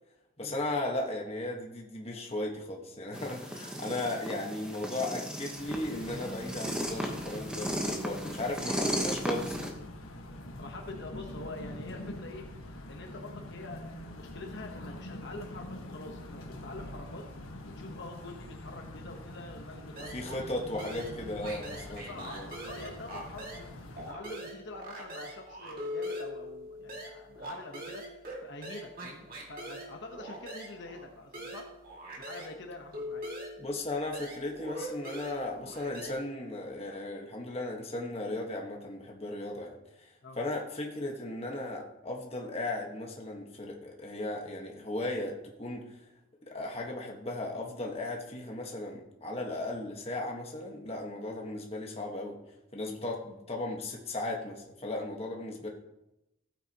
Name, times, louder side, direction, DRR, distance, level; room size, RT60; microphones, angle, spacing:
voice 1, 0.4-9.7 20.0-22.5 33.6-40.1 40.4-45.8 46.4-52.4 52.7-55.7, left 2 dB, 30° left, 0 dB, 1.4 m, -36 dB
sound 1, 3.1-9.7, equal, 5° right, 1.1 m, -35 dB
sound 2, 5.6-24.1, left 1 dB, 80° left, 1.4 m, -45 dB
voice 2, 10.6-12.5 12.9-17.3 17.8-20.1 22.0-31.7 32.2-33.3 40.2-40.4, left 2 dB, 55° left, 2 dB, 1.1 m, -46 dB
sound 3, 20.0-20.5 20.8-23.7 24.0-32.6 32.9-36.1, equal, 40° right, 2.2 m, -42 dB
15.5 x 8.9 x 2.9 m, 0.92 s
head